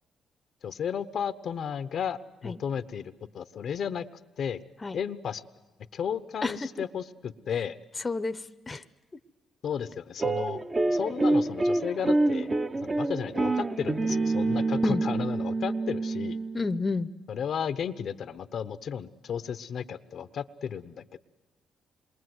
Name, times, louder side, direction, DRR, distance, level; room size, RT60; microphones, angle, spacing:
voice 1, 0.6-4.1 4.4-4.6 4.9-5.4 5.9-7.8 9.6-10.6 10.9-16.4 17.3-21.2, left 8 dB, 60° left, 12 dB, 0.9 m, -33 dB
voice 2, 8.0-8.4 8.7-8.8 14.8-15.0 16.5-17.1, left 3 dB, 25° left, 11 dB, 0.8 m, -29 dB
sound 1, 10.2-16.7, right 2 dB, 25° right, 1.0 m, -27 dB
27.5 x 22.5 x 7.9 m, 1.3 s
cardioid pair, 90°, 0 cm